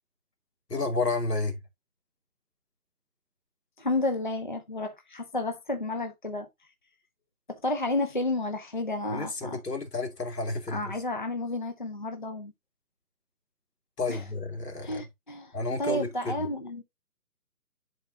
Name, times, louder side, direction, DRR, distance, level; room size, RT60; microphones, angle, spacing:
voice 1, 0.7-1.6 9.1-11.0 14.0-15.1 15.5-16.5, left 3 dB, 90° left, 2.4 m, -31 dB
voice 2, 3.8-6.5 7.5-9.6 10.7-12.5 14.1-14.2 14.8-16.8, left 2 dB, 35° left, 0.5 m, -31 dB
10.5 x 3.7 x 2.7 m
hypercardioid pair, 170°, 47 cm